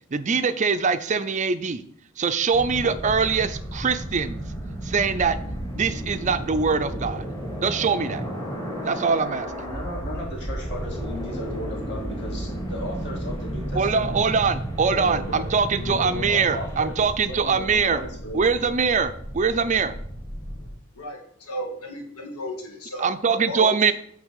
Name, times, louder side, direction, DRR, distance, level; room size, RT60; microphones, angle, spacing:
voice 1, 0.1-1.8 2.2-4.4 4.8-5.4 5.7-7.2 7.6-8.2 8.8-9.5 13.8-18.0 18.3-19.9 23.0-23.9, right 5 dB, 35° right, 12 dB, 0.4 m, -23 dB
sound 1, 2.5-20.7, right 1 dB, 15° left, 1.5 m, -33 dB
voice 2, 9.4-14.2 14.9-15.4 15.8-16.9 17.2-18.7, left 1 dB, 50° left, -2 dB, 2.3 m, -35 dB
voice 3, 21.0-23.1 23.5-23.7, left 1 dB, 85° left, 1 dB, 1.8 m, -33 dB
8.6 x 3.4 x 6.4 m, 0.66 s
head